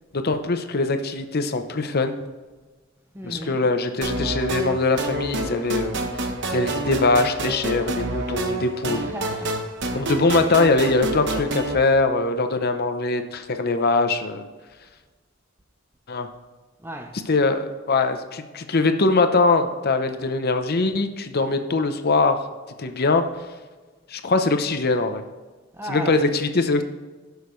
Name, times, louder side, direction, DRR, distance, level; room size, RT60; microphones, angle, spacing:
voice 1, 0.1-2.2 3.2-6.0 6.5-9.0 9.9-14.5 16.1-16.3 17.3-22.5 22.8-23.2 24.1-25.2 25.9-26.8, left 3 dB, 45° left, 0.7 m, -22 dB
voice 2, 3.1-3.6 8.9-9.7 16.8-17.2 25.7-26.3, right 1 dB, 10° right, 0.7 m, -35 dB
sound 1, 4.0-11.7, right 2 dB, 55° right, 1.0 m, -28 dB
16.5 x 6.6 x 3.2 m
head